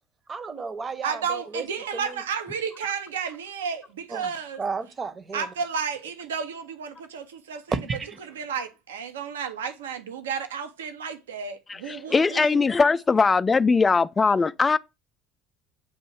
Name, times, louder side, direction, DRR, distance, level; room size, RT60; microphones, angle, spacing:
voice 1, 0.3-1.7 1.9-2.2 4.1-4.3 4.6-5.5 7.7-8.2, right 4 dB, 30° right, 0.8 m, -32 dB
voice 2, 1.0-4.6 5.3-7.8 8.2-12.7, right 6 dB, 75° right, 0.6 m, -32 dB
voice 3, 11.7-14.8, left 4 dB, 25° left, 0.3 m, -21 dB
7.8 x 2.6 x 4.5 m
figure-of-eight pair, 65°, 0 cm